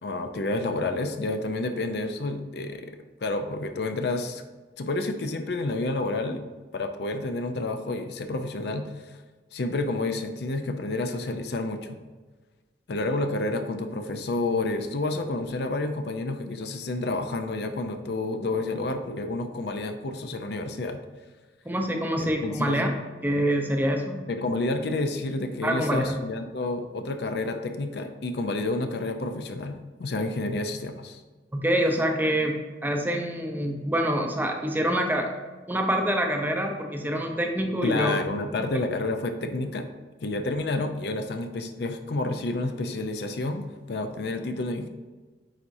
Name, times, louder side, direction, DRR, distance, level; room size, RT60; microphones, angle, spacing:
voice 1, 0.0-2.9 3.2-4.4 4.8-6.4 6.7-9.1 9.5-12.0 12.9-21.0 22.2-22.8 24.3-31.2 37.8-39.9 40.2-44.9, left 2 dB, 65° left, 7 dB, 0.5 m, -29 dB
voice 2, 21.7-24.2 25.6-26.2 31.5-32.6 32.8-35.3 35.7-38.2, equal, 10° right, 3 dB, 0.6 m, -26 dB
9.1 x 4.1 x 2.6 m, 1.3 s
head